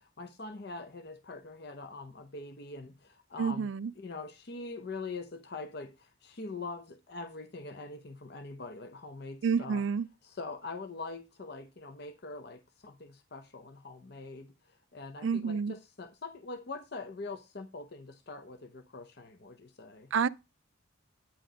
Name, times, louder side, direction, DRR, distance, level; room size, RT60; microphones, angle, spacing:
voice 1, 0.0-3.7 4.0-9.8 10.2-20.1, left 3 dB, 50° left, 0.7 m, -43 dB
voice 2, 3.4-3.9 9.4-10.1 15.2-15.7 20.1-20.3, right 6 dB, 65° right, 0.3 m, -29 dB
9.2 x 4.3 x 5.0 m
head